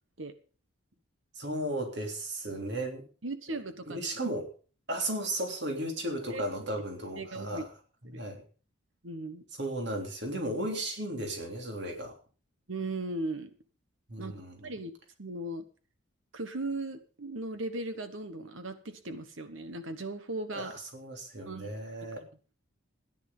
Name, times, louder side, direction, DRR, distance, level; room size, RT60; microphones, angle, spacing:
voice 1, 1.4-3.0 3.5-3.6 3.8-4.5 4.9-7.7 8.1-8.4 9.6-12.2 14.1-14.7 20.5-22.2, right 1 dB, 55° right, 3 dB, 3.4 m, -35 dB
voice 2, 3.2-4.1 6.3-6.4 7.2-7.6 8.0-8.2 9.0-9.4 12.7-13.5 14.2-14.9 15.2-15.6 16.3-20.8 21.5-21.7 22.0-22.2, right 2 dB, 70° right, 10 dB, 1.3 m, -38 dB
14.5 x 10.5 x 5.5 m, 0.38 s
head